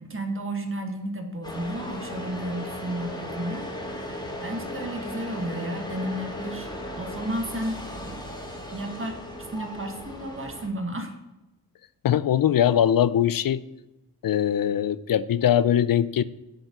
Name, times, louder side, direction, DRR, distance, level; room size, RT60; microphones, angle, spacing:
voice 1, 0.0-6.7 7.0-8.2 8.5-11.1, right 1 dB, 30° right, 4 dB, 1.7 m, -33 dB
sound 1, 1.4-10.7, left 1 dB, 10° left, 2.5 m, -36 dB
voice 2, 12.0-13.6 14.2-16.2, left 10 dB, 55° left, 17 dB, 0.5 m, -21 dB
7.6 x 5.2 x 7.2 m, 0.99 s
cardioid pair, 75°, 42 cm